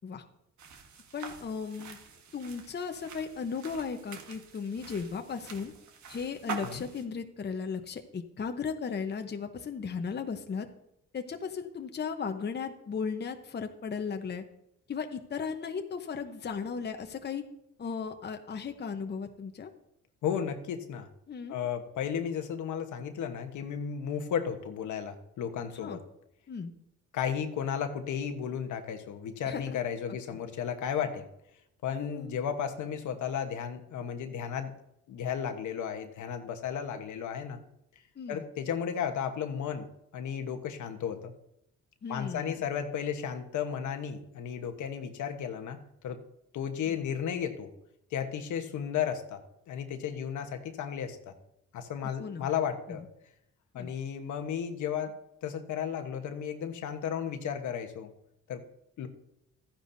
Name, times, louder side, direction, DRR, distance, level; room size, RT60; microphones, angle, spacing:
sound 1, 0.6-7.1, right 6 dB, 70° right, 1.5 m, -45 dB
voice 1, 1.1-2.0 2.3-5.7 6.1-10.7 11.1-14.4 14.9-17.4 17.8-19.7 21.3-21.6 25.7-26.0 26.5-26.7 29.5-29.8 31.9-32.3 38.2-38.4 42.0-42.6 46.8-47.0 52.0-52.5 52.9-53.0 53.7-53.9, left 5 dB, 35° left, 6 dB, 0.9 m, -36 dB
voice 2, 20.2-21.1 21.5-26.0 27.1-31.2 31.8-34.7 35.1-37.6 38.3-39.9 40.1-41.3 42.1-45.8 46.0-46.2 46.5-47.7 48.1-49.4 49.7-51.3 51.7-53.0 53.7-55.1 55.4-58.1 58.5-58.6 59.0-59.1, left 8 dB, 75° left, 6 dB, 1.2 m, -34 dB
13.0 x 10.0 x 2.7 m, 0.80 s
cardioid pair, 90°, 30 cm